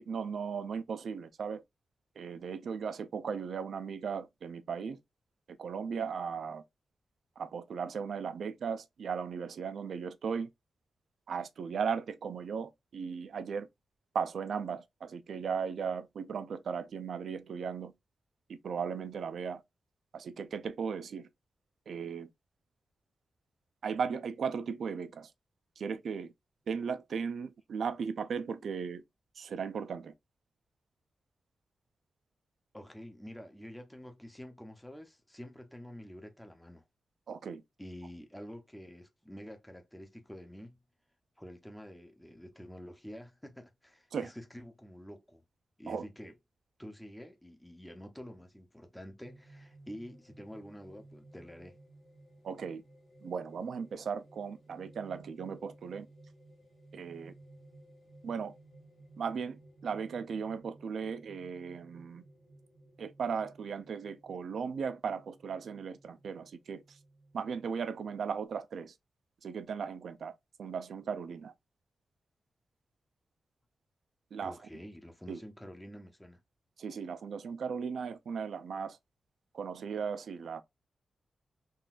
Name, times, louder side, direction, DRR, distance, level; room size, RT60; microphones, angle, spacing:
voice 1, 0.0-1.6 2.2-5.0 5.6-6.6 7.4-10.5 11.3-13.7 14.1-17.9 18.5-19.6 20.1-21.3 21.9-22.3 23.8-25.3 25.8-26.3 26.7-29.0 29.4-30.1 37.3-37.6 44.1-44.3 45.9-46.1 52.4-52.8 53.2-56.1 56.9-57.3 58.2-58.5 59.2-62.2 63.0-67.0 67.3-68.9 69.4-71.5 74.3-74.6 75.3-75.4 76.8-79.0 79.5-80.6, right 6 dB, 75° right, 0.4 m, -37 dB
voice 2, 32.7-36.8 37.8-40.8 41.4-45.4 45.8-46.3 46.8-51.8 74.4-76.4, equal, 5° left, 0.6 m, -48 dB
sound 1, 49.2-68.4, right 2 dB, 45° left, 1.8 m, -58 dB
3.7 x 2.5 x 2.4 m
wide cardioid pair, 120°, 0 cm